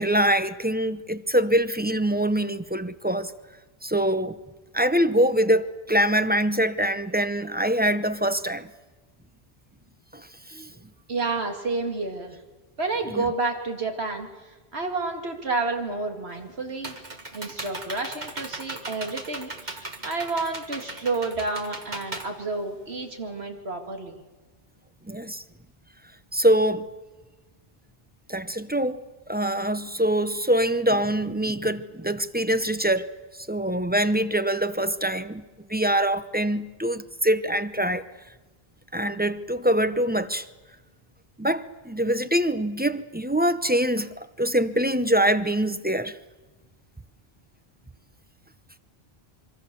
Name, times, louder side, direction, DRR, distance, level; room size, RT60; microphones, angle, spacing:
voice 1, 0.0-3.3 3.8-4.4 4.7-8.7 10.1-10.7 13.1-13.2 25.1-25.4 26.3-26.9 28.3-29.0 29.3-33.1 33.5-35.4 35.7-38.1 38.9-40.5 41.4-46.2, right 1 dB, 10° right, 0.6 m, -24 dB
voice 2, 11.1-12.4 12.8-17.0 17.3-24.2, right 3 dB, 80° right, 2.6 m, -30 dB
Computer keyboard, 16.3-23.2, right 2 dB, 45° right, 2.0 m, -38 dB
25.5 x 24.5 x 6.9 m
omnidirectional pair, 1.1 m